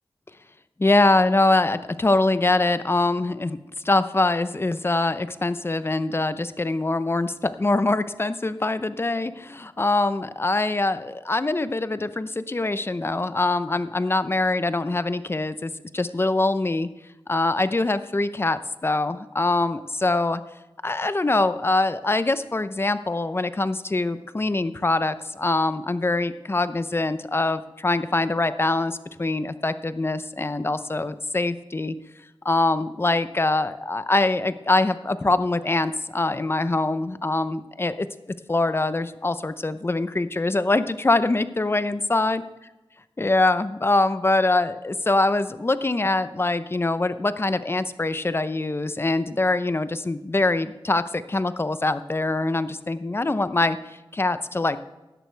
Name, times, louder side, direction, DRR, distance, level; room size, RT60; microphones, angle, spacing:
voice 1, 0.8-3.6 3.8-16.9 17.3-20.4 20.8-32.0 32.4-38.1 38.5-42.4 43.2-54.8, left 2 dB, 25° left, 13 dB, 0.7 m, -23 dB
16.0 x 11.0 x 3.4 m, 1.0 s
cardioid pair, 65°, 9 cm